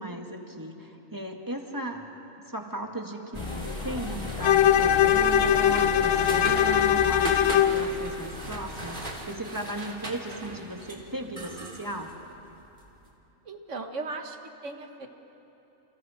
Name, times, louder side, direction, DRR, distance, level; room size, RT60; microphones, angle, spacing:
voice 1, 0.0-2.0 2.4-12.1, right 1 dB, 15° right, 2 dB, 1.9 m, -36 dB
sound 1, 3.3-9.3, left 4 dB, 35° left, 0.5 m, -37 dB
sound 2, 3.3-12.9, right 2 dB, 40° right, 2.9 m, -38 dB
Bowed string instrument, 4.4-7.8, left 10 dB, 85° left, 1.1 m, -21 dB
voice 2, 13.5-14.4 14.6-15.1, right 3 dB, 65° right, 5 dB, 1.8 m, -36 dB
29.0 x 28.5 x 5.1 m, 3.0 s
omnidirectional pair, 1.4 m